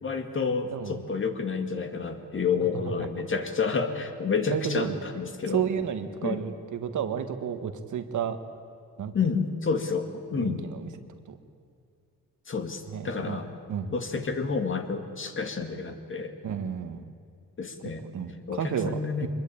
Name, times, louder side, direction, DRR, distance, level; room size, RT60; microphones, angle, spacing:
voice 1, 0.0-5.6 6.2-6.4 9.1-10.6 12.5-13.5 13.9-16.4 17.6-18.1 18.5-19.3, left 5 dB, 35° left, 7 dB, 2.2 m, -29 dB
voice 2, 0.7-1.0 4.5-5.0 5.5-8.4 9.0-9.1 10.4-10.9 11.3-11.4 12.9-13.4 13.7-13.9 16.4-17.0 18.0-18.9 19.2-19.3, right 8 dB, 65° right, 8 dB, 1.7 m, -31 dB
24.0 x 21.5 x 8.6 m, 2.4 s
cardioid pair, 120°, 33 cm